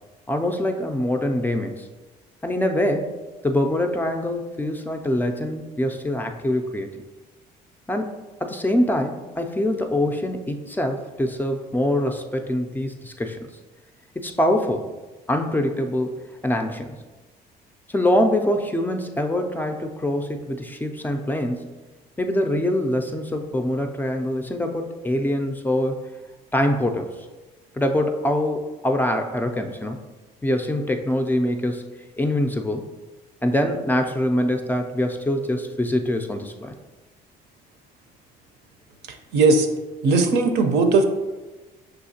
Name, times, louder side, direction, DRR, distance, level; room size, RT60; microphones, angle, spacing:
voice 1, 0.3-1.9 2.4-3.1 3.4-6.9 7.9-13.5 14.2-14.9 15.3-16.2 16.4-17.0 17.9-21.7 22.2-26.0 26.5-27.1 27.8-30.1 30.4-31.8 32.2-32.9 33.4-36.8, left 1 dB, 10° left, 4 dB, 0.3 m, -24 dB
voice 2, 39.3-39.7 40.0-41.0, right 3 dB, 80° right, 5 dB, 0.6 m, -17 dB
6.3 x 2.7 x 2.7 m, 1.2 s
cardioid pair, 110°, 17 cm